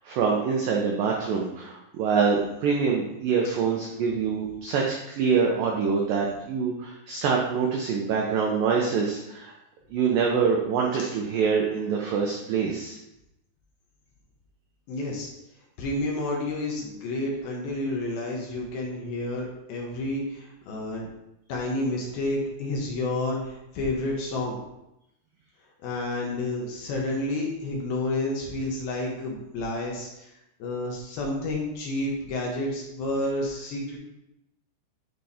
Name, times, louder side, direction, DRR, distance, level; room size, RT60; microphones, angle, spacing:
voice 1, 0.0-9.5 9.9-13.0, right 5 dB, 85° right, -1 dB, 1.9 m, -25 dB
voice 2, 14.9-15.3 15.8-21.1 21.5-24.6 25.8-34.0, left 2 dB, 70° left, -2 dB, 2.7 m, -30 dB
10.0 x 3.4 x 4.2 m, 0.87 s
omnidirectional pair, 5.0 m